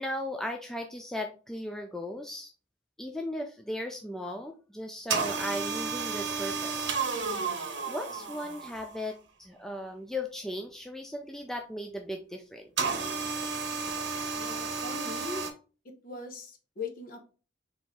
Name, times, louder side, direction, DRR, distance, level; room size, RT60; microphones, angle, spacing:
voice 1, 0.0-2.5 3.0-6.9 7.2-7.6 7.9-12.9, left 1 dB, ahead, 2 dB, 0.3 m, -37 dB
sound 1, 5.1-9.0 12.8-15.5, right 5 dB, 65° right, 0.8 m, -32 dB
voice 2, 14.3-15.4 16.0-17.2, left 4 dB, 45° left, 4 dB, 0.9 m, -40 dB
4.2 x 2.9 x 3.6 m, 0.36 s
head